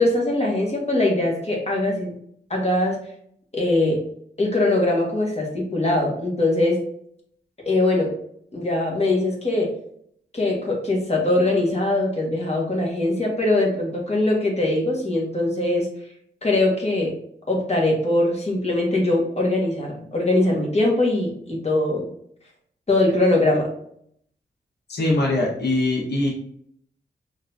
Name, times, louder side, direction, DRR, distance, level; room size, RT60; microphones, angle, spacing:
voice 1, 0.0-2.1 2.5-3.0 3.5-4.0 4.4-6.8 7.6-8.1 8.5-9.7 10.3-15.9 16.4-17.1 17.5-22.1 22.9-23.7, left 2 dB, 35° left, -1 dB, 1.7 m, -21 dB
voice 2, 24.9-26.3, left 2 dB, 65° left, -3 dB, 1.4 m, -22 dB
5.1 x 3.1 x 2.8 m, 0.66 s
cardioid pair, 65°, 18 cm